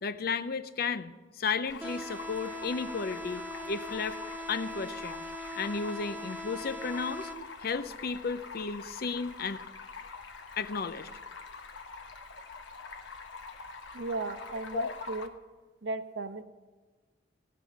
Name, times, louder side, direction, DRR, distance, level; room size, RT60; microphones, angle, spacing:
voice 1, 0.0-4.2 4.5-5.2 5.5-7.3 7.6-9.6 10.6-11.1 14.7-14.9, left 5 dB, 55° left, 13 dB, 0.6 m, -34 dB
Stream, 1.6-15.3, left 4 dB, 85° left, 1.0 m, -45 dB
sound 1, 1.8-7.8, equal, 10° right, 0.8 m, -41 dB
voice 2, 13.9-15.3 15.8-16.4, right 3 dB, 70° right, 8 dB, 0.9 m, -35 dB
16.0 x 5.5 x 7.3 m, 1.3 s
head